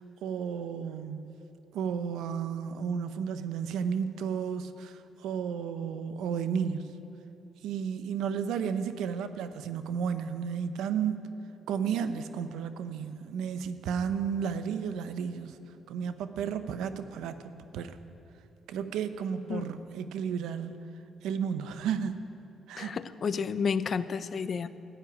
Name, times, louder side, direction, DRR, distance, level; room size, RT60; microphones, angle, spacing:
voice 1, 0.0-1.4 1.7-6.9 7.6-11.2 11.7-15.6 15.9-18.0 18.7-20.8 21.2-22.2 22.7-22.9, right 7 dB, 85° right, 11 dB, 0.7 m, -33 dB
voice 2, 22.8-24.7, left 6 dB, 50° left, 14 dB, 0.6 m, -31 dB
13.5 x 9.0 x 9.3 m, 2.9 s
cardioid pair, 90°, 0 cm